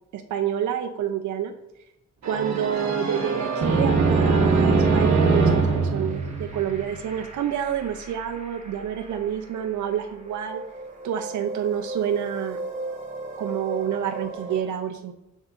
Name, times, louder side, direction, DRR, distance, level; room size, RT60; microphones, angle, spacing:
voice 1, 0.1-1.5 2.2-10.6 11.0-12.6 13.4-15.1, right 9 dB, 80° right, 5 dB, 0.5 m, -28 dB
sound 1, 2.2-7.0, right 4 dB, 65° right, 1.0 m, -22 dB
sound 2, 4.7-14.6, right 2 dB, 25° right, 1.0 m, -38 dB
6.4 x 6.3 x 2.4 m, 0.89 s
wide cardioid pair, 180°, 29 cm